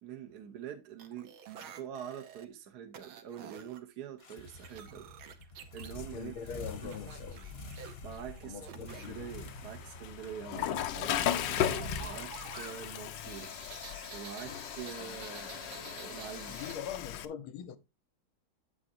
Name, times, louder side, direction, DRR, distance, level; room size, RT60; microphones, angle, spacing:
voice 1, 0.0-5.1 5.7-7.0 8.0-13.5 14.1-16.8, right 9 dB, 60° right, 1.3 m, -45 dB
sound 1, 1.0-2.4 2.9-3.8 4.2-5.9 6.9-9.1 11.7-16.7, right 8 dB, 75° right, 1.9 m, -50 dB
sound 2, 4.2-14.0, left 2 dB, 40° left, 1.0 m, -47 dB
voice 2, 6.0-7.5 8.4-9.3 16.5-17.8, left 8 dB, 85° left, 1.7 m, -42 dB
Water / Toilet flush, 8.9-17.3, left 11 dB, 70° left, 1.3 m, -37 dB
9.7 x 7.8 x 2.7 m
omnidirectional pair, 2.3 m